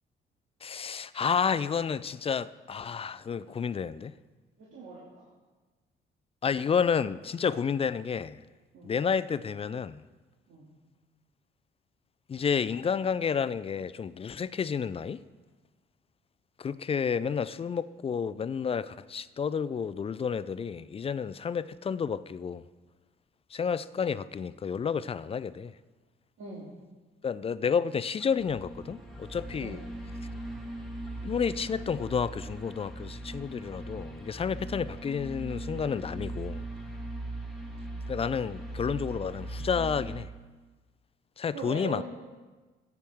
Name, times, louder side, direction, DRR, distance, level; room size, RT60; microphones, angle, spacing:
voice 1, 0.6-4.1 6.4-8.4 8.8-10.0 12.3-15.2 16.6-22.6 23.5-25.7 27.2-29.8 31.2-36.7 38.1-40.3 41.4-42.0, left 6 dB, 30° left, 0.3 m, -30 dB
voice 2, 4.6-5.3 8.7-8.9 10.5-10.7 26.4-26.7 29.5-29.8 41.5-42.0, right 4 dB, 80° right, 2.5 m, -40 dB
sound 1, 28.2-40.2, right 2 dB, ahead, 1.8 m, -39 dB
14.5 x 9.2 x 3.6 m
cardioid pair, 90°, 20 cm